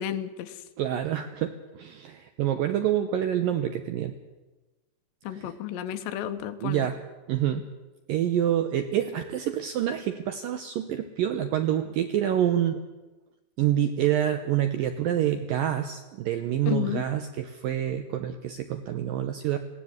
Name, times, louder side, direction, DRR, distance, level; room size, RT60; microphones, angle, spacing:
voice 1, 0.0-0.6 5.2-6.9 16.7-17.0, left 11 dB, 90° left, 8 dB, 3.2 m, -32 dB
voice 2, 0.8-4.1 5.3-5.5 6.6-7.0 7.3-7.6 8.1-12.8 13.6-19.6, right 11 dB, 75° right, 8 dB, 2.1 m, -27 dB
20.0 x 17.0 x 8.0 m, 1.1 s
omnidirectional pair, 5.0 m